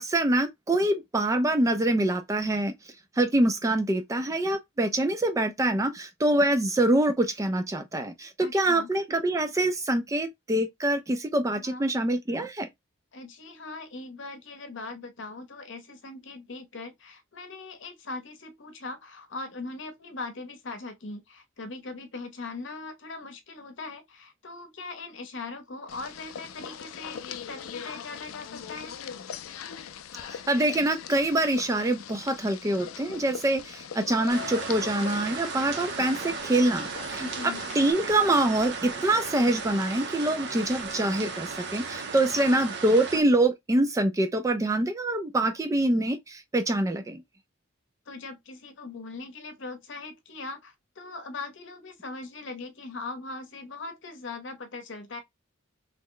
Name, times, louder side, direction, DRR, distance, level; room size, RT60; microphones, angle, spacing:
voice 1, 0.0-2.7 3.2-12.7 30.5-37.3 37.8-47.2, right 1 dB, 15° right, 0.3 m, -25 dB
voice 2, 8.4-8.9 11.6-11.9 13.1-29.0 37.2-37.6 42.3-42.7 48.1-55.2, left 3 dB, 60° left, 0.8 m, -40 dB
sound 1, 25.9-37.9, left 8 dB, 85° left, 0.4 m, -41 dB
sound 2, 34.3-43.2, right 4 dB, 55° right, 0.6 m, -36 dB
3.0 x 2.1 x 3.8 m
head